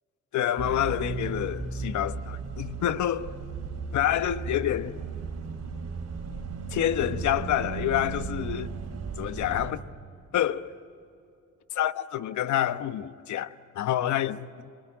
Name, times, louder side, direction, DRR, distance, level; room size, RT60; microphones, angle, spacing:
voice 1, 0.3-3.4 3.9-5.0 6.7-8.7 9.2-9.8 10.3-10.7 11.7-14.7, left 11 dB, 70° left, 1.0 m, -28 dB
sound 1, 0.6-9.7, right 5 dB, 55° right, 4.7 m, -35 dB
29.0 x 20.5 x 9.1 m
cardioid pair, 90°, 30 cm